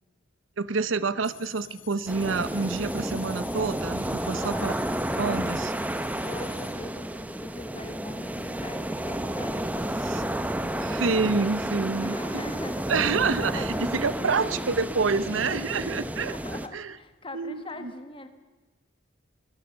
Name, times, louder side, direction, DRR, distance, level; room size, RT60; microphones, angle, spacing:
Drum, 0.6-11.6, left 1 dB, 30° right, 5.5 m, -57 dB
voice 1, 0.6-4.7 5.2-5.7 10.1-10.2 10.8-12.2 12.9-16.3 16.7-16.9 17.3-17.9, right 4 dB, 85° right, 16 dB, 0.8 m, -28 dB
sound 1, 1.2-6.8, left 13 dB, 75° left, 1.6 m, -50 dB
sound 2, 2.1-16.7, right 1 dB, 10° right, 0.8 m, -31 dB
voice 2, 4.2-5.5 6.2-11.1 12.0-13.1 13.5-15.6 16.3-18.3, left 1 dB, 25° left, 8 dB, 1.6 m, -42 dB
23.0 x 18.0 x 6.7 m, 1.3 s
head